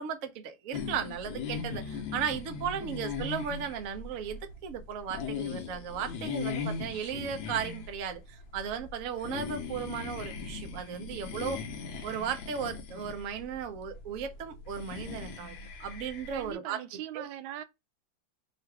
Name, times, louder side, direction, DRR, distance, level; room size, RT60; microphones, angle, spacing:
voice 1, 0.0-11.6 12.0-16.8 17.1-17.3, right 7 dB, 60° right, 0.9 m, -36 dB
sound 1, 0.7-16.5, left 5 dB, 80° left, 1.6 m, -39 dB
voice 2, 16.3-17.6, right 12 dB, 90° right, 1.4 m, -41 dB
3.8 x 2.5 x 4.5 m
omnidirectional pair, 2.1 m